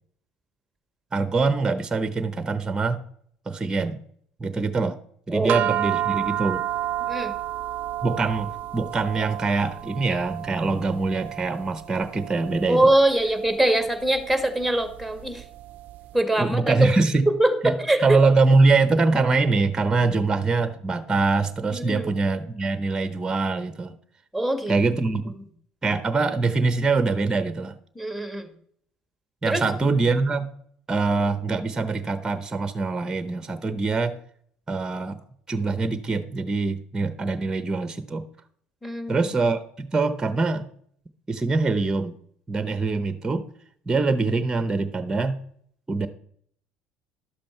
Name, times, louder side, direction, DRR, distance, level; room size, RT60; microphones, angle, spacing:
voice 1, 1.1-3.0 3.5-4.0 4.4-5.0 5.3-6.6 8.0-12.9 16.4-17.3 17.6-23.9 24.7-25.3 25.8-27.8 29.4-30.5 30.9-34.2 34.7-35.2 35.5-38.2 39.1-40.7 41.3-42.1 42.5-43.4 43.9-45.4 45.9-46.1, right 3 dB, 20° right, 11 dB, 0.9 m, -23 dB
sound 1, 5.5-16.0, right 13 dB, 60° right, 0.5 m, -31 dB
voice 2, 7.0-7.3 12.7-15.4 16.1-16.7 17.3-17.5 17.9-18.0 21.7-22.1 24.3-24.7 28.0-28.5 29.5-29.6 38.8-39.2, right 1 dB, 5° left, 8 dB, 1.8 m, -23 dB
12.0 x 7.5 x 4.5 m, 0.63 s
supercardioid pair, 85°, 3 cm